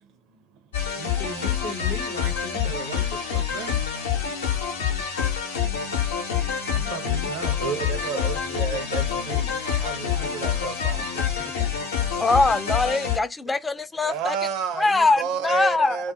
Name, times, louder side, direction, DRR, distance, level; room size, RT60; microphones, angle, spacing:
sound 1, 0.7-13.2, left 8 dB, 80° left, 0.6 m, -26 dB
voice 1, 0.9-3.8 6.7-7.6, right 2 dB, 80° right, 1.0 m, -36 dB
voice 2, 7.6-11.2 14.0-16.1, right 6 dB, 60° right, 0.6 m, -31 dB
voice 3, 12.2-14.4 14.8-16.0, left 3 dB, 20° left, 0.3 m, -22 dB
2.3 x 2.2 x 2.6 m
figure-of-eight pair, 65°, 0 cm